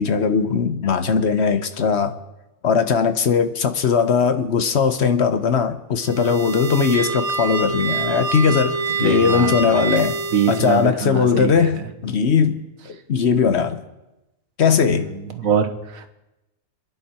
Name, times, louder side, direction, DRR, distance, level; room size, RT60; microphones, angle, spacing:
voice 1, 0.0-2.2 2.6-10.2 10.5-13.8 14.6-15.1, left 6 dB, 60° left, 1.1 m, -19 dB
sound 1, 6.0-10.9, right 3 dB, 70° right, 1.8 m, -26 dB
voice 2, 9.0-9.8 10.3-11.7 14.9-15.0 15.3-16.1, right 7 dB, 90° right, 1.7 m, -23 dB
27.5 x 10.5 x 4.3 m
omnidirectional pair, 1.4 m